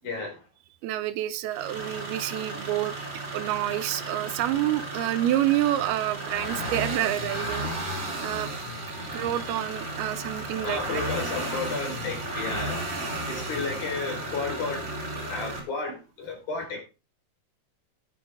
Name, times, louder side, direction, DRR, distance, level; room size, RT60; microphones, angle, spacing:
voice 1, 0.0-0.4 9.0-9.1 10.6-12.9 13.3-14.9 15.3-16.8, left 4 dB, 65° left, 6.6 m, -33 dB
voice 2, 0.8-2.9 3.3-7.8 8.2-8.5 9.1-10.8, right 13 dB, 80° right, 2.7 m, -28 dB
sound 1, 1.5-15.6, right 1 dB, 30° right, 4.2 m, -34 dB
11.5 x 11.0 x 3.7 m
omnidirectional pair, 4.5 m